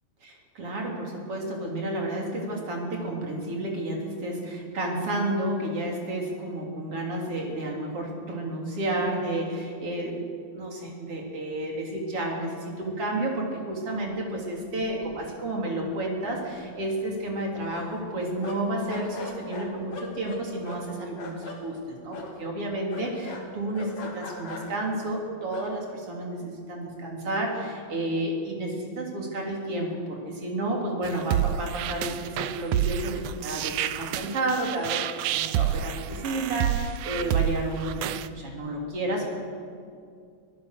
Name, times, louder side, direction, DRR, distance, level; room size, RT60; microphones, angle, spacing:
voice 1, 0.2-10.3 10.5-39.4, right 1 dB, 45° right, 0 dB, 4.1 m, -31 dB
sound 1, 14.5-14.6 14.8-15.5 15.7-15.8 16.2-18.1 18.4-21.6 22.1-22.3 22.9-24.9 25.4-25.7, left 3 dB, 70° left, 3.9 m, -41 dB
sound 2, 31.0-38.3, right 10 dB, 80° right, 1.4 m, -28 dB
24.5 x 16.0 x 6.6 m, 2.3 s
omnidirectional pair, 3.6 m